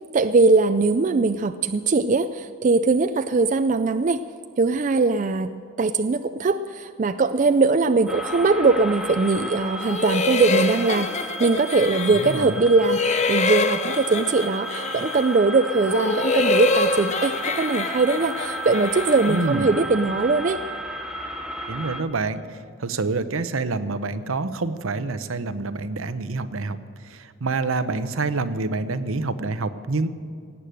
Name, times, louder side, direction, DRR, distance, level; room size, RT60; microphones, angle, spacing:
voice 1, 0.1-4.2 4.6-5.5 5.8-20.6, right 3 dB, 35° right, 10 dB, 0.3 m, -21 dB
sound 1, 8.1-22.0, equal, 5° right, 0.8 m, -33 dB
sound 2, 9.8-12.5 12.8-15.4 15.8-19.6, left 3 dB, 35° left, 0.6 m, -26 dB
voice 2, 12.1-12.6 19.3-19.7 21.7-30.1, right 3 dB, 75° right, 12 dB, 0.8 m, -27 dB
18.0 x 8.4 x 7.7 m, 2.2 s
head